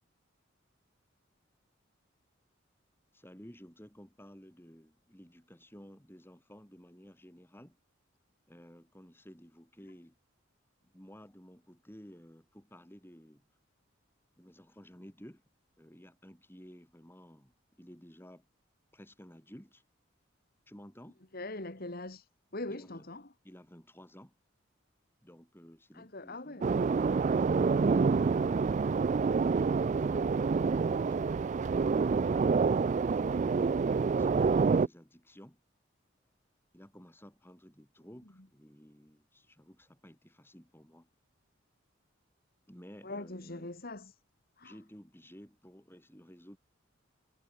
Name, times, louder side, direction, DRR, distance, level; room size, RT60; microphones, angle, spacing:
voice 1, 3.1-7.8 8.5-10.1 10.8-13.4 14.4-15.4 15.8-18.4 18.9-19.8 20.7-21.2 22.7-23.1 23.4-24.3 25.2-26.8 27.3-28.4 29.4-31.8 32.2-35.6 36.7-41.1 42.7-43.7 44.6-46.6, equal, 10° left, 4.5 m, -54 dB
voice 2, 21.3-23.3 25.9-26.8 43.0-44.2 44.6-44.8, left 2 dB, 50° left, 2.6 m, -42 dB
sound 1, 26.6-34.9, right 5 dB, 35° right, 0.3 m, -27 dB
head